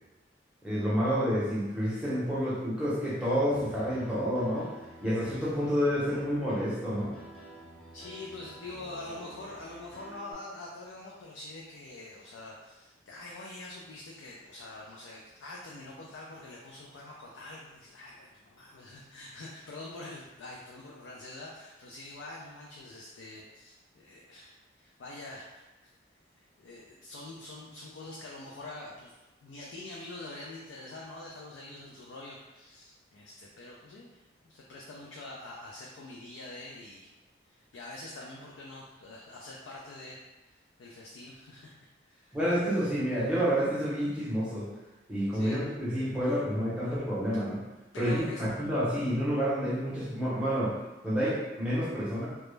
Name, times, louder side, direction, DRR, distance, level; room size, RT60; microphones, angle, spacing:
voice 1, 0.6-4.7 5.0-7.1 42.3-44.7 45.1-47.6 48.0-50.7 51.0-52.3, equal, 5° right, -9 dB, 0.6 m, -29 dB
Piano, 3.5-10.3, right 1 dB, 55° left, 0.8 m, -50 dB
voice 2, 7.9-25.9 26.3-29.1 29.4-37.1 37.5-41.8 42.1-42.4 45.3-45.6 46.2-46.4 47.9-48.4, left 2 dB, 80° left, -4 dB, 0.4 m, -45 dB
2.2 x 2.0 x 3.1 m, 1.1 s
head